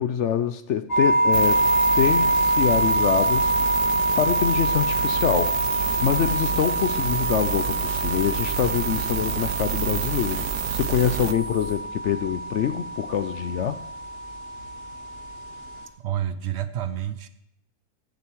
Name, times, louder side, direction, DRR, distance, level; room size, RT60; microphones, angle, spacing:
voice 1, 0.0-1.6 2.0-3.8 4.2-13.8, left 9 dB, 65° left, 11 dB, 0.7 m, -25 dB
sound 1, 0.9-15.9, right 1 dB, 40° left, 1.6 m, -26 dB
sound 2, 1.3-11.3, right 13 dB, 90° right, 1.2 m, -29 dB
sound 3, 5.6-11.8, left 2 dB, 40° right, 2.1 m, -41 dB
voice 2, 16.0-17.3, right 11 dB, 60° right, 12 dB, 0.7 m, -29 dB
15.0 x 6.8 x 4.6 m, 0.75 s
omnidirectional pair, 1.7 m